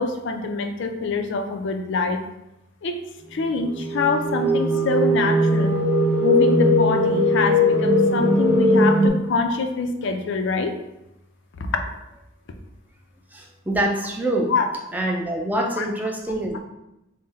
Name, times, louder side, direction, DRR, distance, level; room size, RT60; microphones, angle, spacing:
voice 1, 0.0-2.2 2.8-3.0 3.3-5.8 6.2-10.7 11.6-11.8 14.5-14.7 15.8-15.9, left 3 dB, 60° left, 5 dB, 0.4 m, -25 dB
sound 1, 3.6-9.1, equal, 80° right, 0.7 m, -19 dB
voice 2, 13.3-14.5 14.9-16.6, right 1 dB, 10° right, 1 dB, 0.4 m, -25 dB
3.8 x 2.1 x 4.0 m, 0.88 s
head